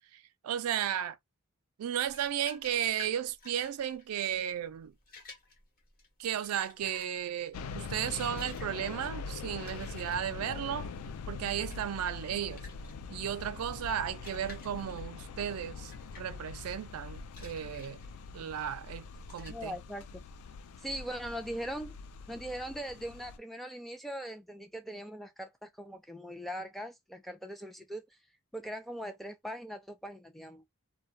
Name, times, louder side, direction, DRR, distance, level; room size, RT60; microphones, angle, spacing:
voice 1, 0.1-1.2 1.8-4.9 6.2-10.9 11.3-12.7 13.1-18.0 18.3-19.8, right 10 dB, 85° right, 0.3 m, -34 dB
sound 1, 2.0-20.2, left 3 dB, 40° left, 0.9 m, -54 dB
sound 2, 7.5-23.4, left 5 dB, 80° left, 0.3 m, -43 dB
voice 2, 19.5-20.2 20.8-22.0 22.3-28.1 28.5-30.6, equal, ahead, 0.3 m, -40 dB
2.3 x 2.1 x 2.6 m
head